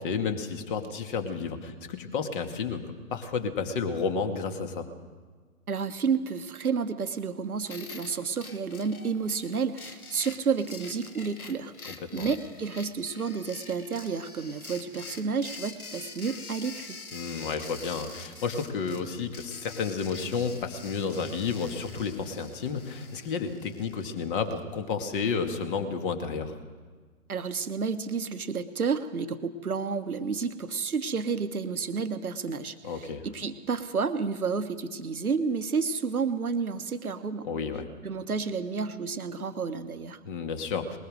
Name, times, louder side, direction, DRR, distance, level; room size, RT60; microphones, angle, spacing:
voice 1, 0.0-4.9 12.0-12.3 17.1-26.6 32.8-33.3 37.4-37.8 40.3-41.0, left 5 dB, 35° left, 6 dB, 2.2 m, -31 dB
voice 2, 5.7-11.7 12.1-17.0 27.3-37.5 38.0-40.2, right 5 dB, 75° right, 9 dB, 1.3 m, -30 dB
sound 1, 7.6-24.6, left 4 dB, 70° left, 2.2 m, -45 dB
21.0 x 19.5 x 6.5 m, 1.5 s
figure-of-eight pair, 125°, 44 cm